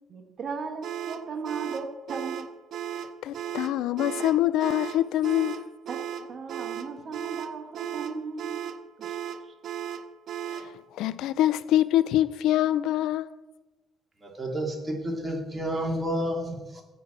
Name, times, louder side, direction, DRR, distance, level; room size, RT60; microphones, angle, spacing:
voice 1, 0.1-2.5 5.9-9.2 9.4-9.5, right 5 dB, 50° right, 1.3 m, -37 dB
sound 1, 0.8-10.7, right 9 dB, 65° right, 0.6 m, -36 dB
voice 2, 3.0-5.7 10.5-13.3, left 13 dB, 80° left, 0.4 m, -25 dB
voice 3, 14.2-16.8, equal, 20° right, 2.6 m, -30 dB
8.4 x 5.1 x 7.3 m
cardioid pair, 95°, 0 cm